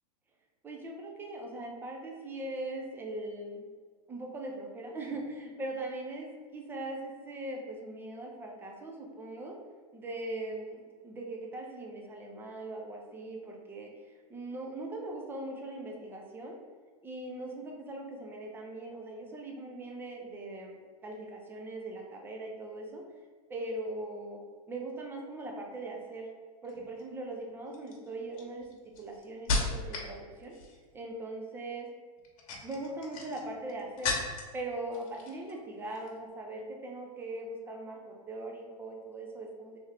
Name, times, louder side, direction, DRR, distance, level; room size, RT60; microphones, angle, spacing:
voice 1, 0.6-3.6 4.1-9.6 9.9-16.6 17.0-23.0 23.5-24.4 24.7-26.3 26.6-28.7 29.0-30.6 30.9-31.9 32.6-34.1 34.5-39.8, right 2 dB, 10° right, 0 dB, 0.5 m, -40 dB
sound 1, 26.6-27.0 27.7-30.1 30.4-30.9 32.2-34.6 34.9-35.6 35.8-36.1, left 3 dB, 60° left, 1.0 m, -35 dB
3.4 x 3.2 x 3.4 m, 1.5 s
supercardioid pair, 140°, 20 cm